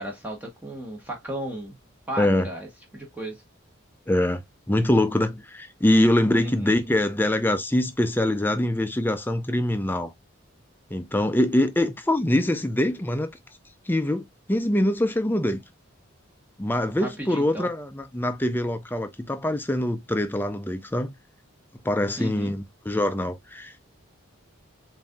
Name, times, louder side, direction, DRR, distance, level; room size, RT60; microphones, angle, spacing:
voice 1, 0.0-1.8 2.1-2.7 2.9-3.4 6.4-6.7 17.0-17.7 22.2-22.5, right 1 dB, 10° right, 0.9 m, -34 dB
voice 2, 2.2-2.5 4.1-4.4 4.7-10.1 10.9-13.3 13.8-15.6 16.6-21.1 21.8-23.9, left 1 dB, 10° left, 0.5 m, -24 dB
7.1 x 2.7 x 2.3 m
head